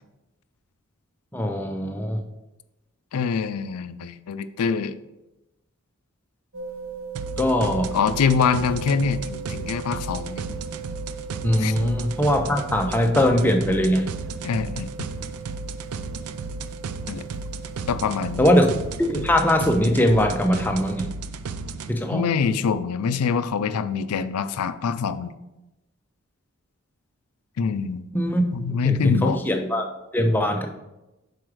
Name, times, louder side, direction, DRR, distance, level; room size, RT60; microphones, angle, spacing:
voice 1, 1.3-2.2 7.4-8.0 11.4-14.1 18.4-18.7 19.1-21.1 21.9-22.3 28.1-28.4 28.8-29.9 30.1-30.7, left 1 dB, 10° left, 3 dB, 0.5 m, -21 dB
voice 2, 3.1-4.9 7.9-10.5 11.6-11.7 14.4-15.1 17.1-17.2 17.9-18.5 22.1-25.3 27.6-28.1 28.5-29.4, left 6 dB, 90° left, 12 dB, 0.4 m, -25 dB
sound 1, 6.5-20.9, right 6 dB, 55° right, 1.0 m, -40 dB
sound 2, 7.1-21.9, right 4 dB, 80° right, 0.4 m, -34 dB
6.1 x 4.8 x 4.8 m, 0.98 s
head